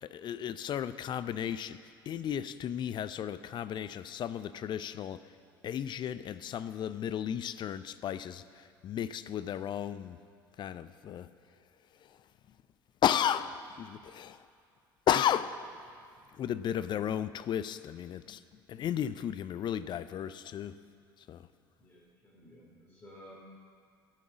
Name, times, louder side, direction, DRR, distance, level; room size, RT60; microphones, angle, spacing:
voice 1, 0.0-5.2 5.6-10.2 10.6-11.3 11.9-12.3 13.0-14.5 15.1-15.8 16.3-18.4 18.7-20.8 21.2-21.5, left 9 dB, 40° left, 14 dB, 0.4 m, -34 dB
voice 2, 21.8-23.3, equal, 20° left, -6 dB, 2.8 m, -54 dB
13.0 x 6.1 x 7.0 m, 2.3 s
figure-of-eight pair, 65°, 12 cm